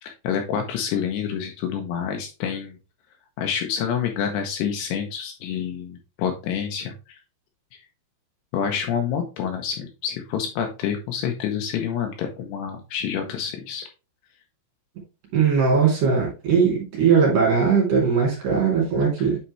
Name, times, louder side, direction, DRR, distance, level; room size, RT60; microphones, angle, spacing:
voice 1, 0.0-2.8 3.4-7.2 8.5-13.9, left 8 dB, 75° left, 4 dB, 2.7 m, -28 dB
voice 2, 15.3-19.4, right 6 dB, 50° right, -3 dB, 3.8 m, -19 dB
8.5 x 4.3 x 3.1 m, 0.30 s
omnidirectional pair, 5.4 m